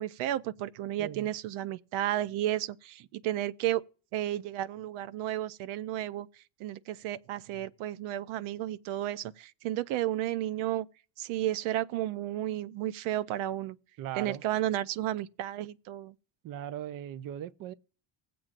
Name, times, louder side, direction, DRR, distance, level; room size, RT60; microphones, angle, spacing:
voice 1, 0.0-3.8 4.1-6.3 6.6-10.9 11.2-13.8 14.2-16.1, right 13 dB, 90° right, 0.6 m, -32 dB
voice 2, 1.0-1.3 14.0-14.4 16.4-17.7, right 11 dB, 45° right, 0.5 m, -39 dB
20.5 x 7.7 x 2.5 m
cardioid pair, 115°, 48 cm